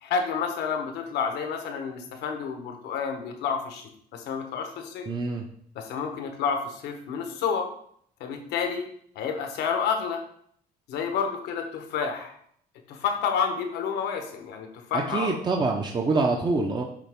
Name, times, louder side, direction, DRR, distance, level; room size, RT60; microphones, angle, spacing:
voice 1, 0.0-5.1 5.7-7.7 8.2-8.9 9.1-10.2 10.9-12.3 12.9-15.4, left 6 dB, 80° left, 5 dB, 1.2 m, -29 dB
voice 2, 5.1-5.4 14.9-16.8, right 3 dB, 25° right, 1 dB, 0.7 m, -25 dB
9.9 x 3.6 x 3.6 m, 0.64 s
cardioid pair, 110°, 17 cm